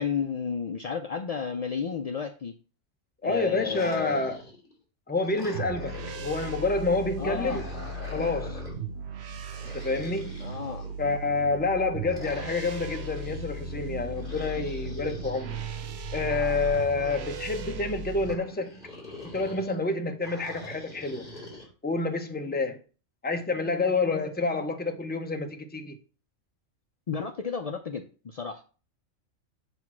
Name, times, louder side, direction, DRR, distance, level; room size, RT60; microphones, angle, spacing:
voice 1, 0.0-2.6 3.2-4.3 7.2-7.6 10.4-10.8 27.1-28.6, left 6 dB, 70° left, 0.3 m, -32 dB
voice 2, 3.2-4.4 5.1-7.7 8.1-8.6 9.7-10.4 11.0-15.6 16.1-18.7 19.3-21.3 21.8-22.8 23.2-26.0, left 3 dB, 10° left, 0.5 m, -28 dB
sound 1, 3.5-4.7 5.2-6.6 7.2-8.8 9.5-11.2 12.1-13.4 14.1-15.5 16.2-17.6 18.2-19.8 20.2-21.7, left 1 dB, 40° left, 2.9 m, -44 dB
sound 2, 5.5-18.3, right 2 dB, 60° right, 0.8 m, -37 dB
7.9 x 3.0 x 6.0 m
omnidirectional pair, 1.4 m